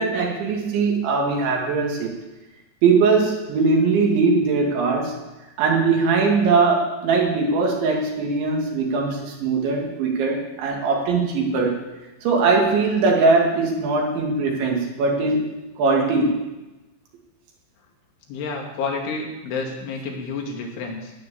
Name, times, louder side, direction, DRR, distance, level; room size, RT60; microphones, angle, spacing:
voice 1, 0.0-2.1 2.8-5.2 5.6-11.8 12.2-15.5 15.8-16.4, right 4 dB, 75° right, -1 dB, 4.5 m, -20 dB
voice 2, 18.3-21.1, left 4 dB, 85° left, 0 dB, 4.7 m, -29 dB
15.5 x 9.9 x 7.0 m, 1.1 s
omnidirectional pair, 5.3 m